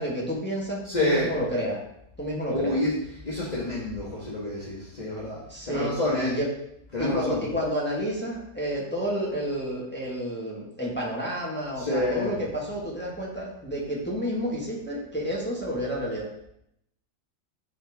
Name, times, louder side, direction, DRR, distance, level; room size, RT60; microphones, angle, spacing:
voice 1, 0.0-1.8 2.2-2.7 5.4-6.5 7.0-16.3, equal, 5° left, -5 dB, 1.3 m, -30 dB
voice 2, 0.8-1.3 2.5-3.0 3.2-6.4 6.9-7.4 11.8-12.4, left 1 dB, 25° left, -6 dB, 1.3 m, -28 dB
8.9 x 4.3 x 3.5 m, 0.77 s
omnidirectional pair, 2.0 m